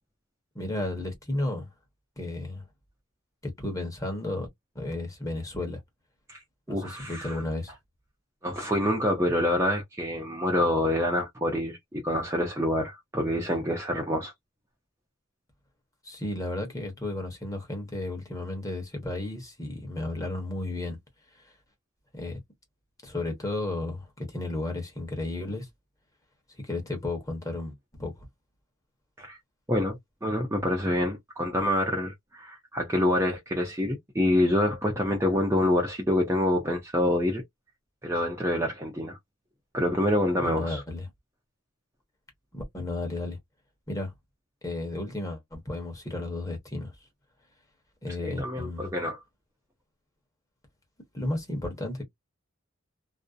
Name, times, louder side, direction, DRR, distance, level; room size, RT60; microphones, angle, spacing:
voice 1, 0.5-1.7 2.2-2.6 3.4-4.5 4.7-5.8 6.7-7.7 16.0-21.0 21.3-21.4 22.1-22.4 23.0-25.7 26.6-28.3 40.4-41.1 42.5-43.4 43.9-44.1 44.6-46.9 48.0-48.9 51.1-52.0, left 2 dB, 15° left, 0.9 m, -33 dB
voice 2, 6.7-7.4 8.4-14.3 29.2-29.4 29.7-37.4 38.0-39.2 39.7-40.8 48.2-49.2, left 1 dB, 15° right, 0.5 m, -26 dB
2.6 x 2.0 x 2.3 m
head